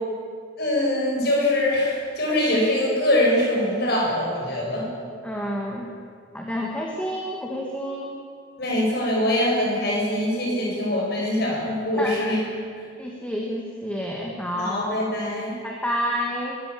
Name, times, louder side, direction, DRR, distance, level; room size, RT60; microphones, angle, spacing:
voice 1, 0.6-4.9 8.6-12.4 14.6-15.6, left 1 dB, 50° left, -3 dB, 7.8 m, -23 dB
voice 2, 5.2-5.9 6.3-8.1 12.0-12.2 13.0-14.8 15.6-16.6, equal, 5° left, -1 dB, 2.0 m, -29 dB
23.0 x 15.0 x 8.8 m, 2.2 s
head